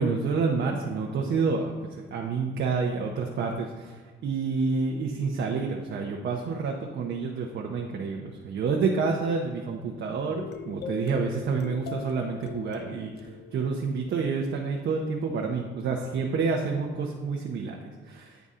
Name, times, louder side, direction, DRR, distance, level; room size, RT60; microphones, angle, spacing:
voice 1, 0.0-18.5, right 4 dB, 65° right, 0 dB, 0.8 m, -29 dB
sound 1, 10.3-14.8, left 7 dB, 55° left, 0.6 m, -41 dB
9.4 x 4.1 x 3.7 m, 1.5 s
cardioid pair, 90°, 20 cm